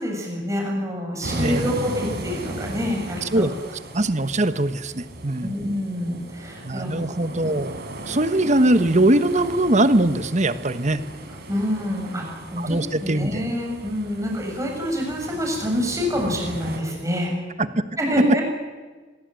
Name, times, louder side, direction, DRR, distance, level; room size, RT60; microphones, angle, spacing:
voice 1, 0.0-3.5 5.4-7.0 11.5-17.3 18.0-18.4, equal, 15° right, 1 dB, 7.2 m, -27 dB
sound 1, 1.2-16.8, right 1 dB, 55° right, 5.1 m, -36 dB
voice 2, 3.9-5.5 6.6-11.0 12.6-13.4 17.6-17.7, right 1 dB, 40° right, 12 dB, 1.2 m, -21 dB
24.5 x 21.5 x 9.1 m, 1.4 s
head